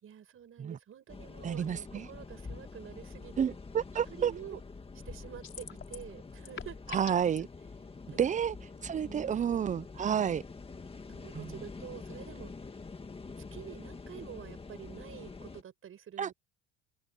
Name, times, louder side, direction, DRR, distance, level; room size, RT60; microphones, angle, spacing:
voice 1, 0.0-3.4 4.1-4.6 5.1-7.0 8.1-8.3 9.0-9.5 11.1-12.5 13.4-16.3, right 9 dB, 40° right, 5.4 m, -48 dB
sound 1, 1.1-15.6, left 4 dB, 15° left, 2.0 m, -46 dB
voice 2, 1.4-2.1 3.4-4.3 6.9-7.5 8.2-8.5 8.8-10.4 11.3-11.6 16.2-16.3, right 8 dB, 20° right, 0.5 m, -30 dB
sound 2, 5.4-6.1 6.4-7.4, left 8 dB, 35° left, 5.5 m, -43 dB
open air
cardioid pair, 120°, 34 cm